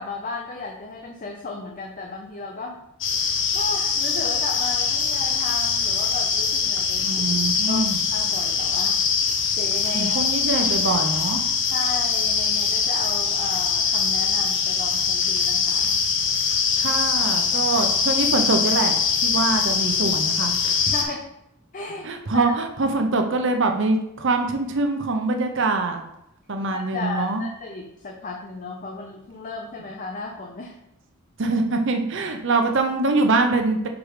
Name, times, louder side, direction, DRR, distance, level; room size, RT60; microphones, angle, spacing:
voice 1, 0.0-2.8 3.5-7.2 7.7-7.9 8.1-9.0 9.6-10.3 10.8-10.9 11.7-15.9 20.8-21.3 21.7-22.5 26.7-30.7, left 3 dB, 40° left, 1 dB, 0.6 m, -34 dB
sound 1, 3.0-21.0, left 6 dB, 60° left, 0.9 m, -23 dB
voice 2, 7.0-8.0 9.9-11.4 16.8-20.5 22.0-26.0 26.5-27.4 31.4-33.9, right 3 dB, 60° right, 4 dB, 0.8 m, -24 dB
5.2 x 4.8 x 5.0 m, 0.80 s
head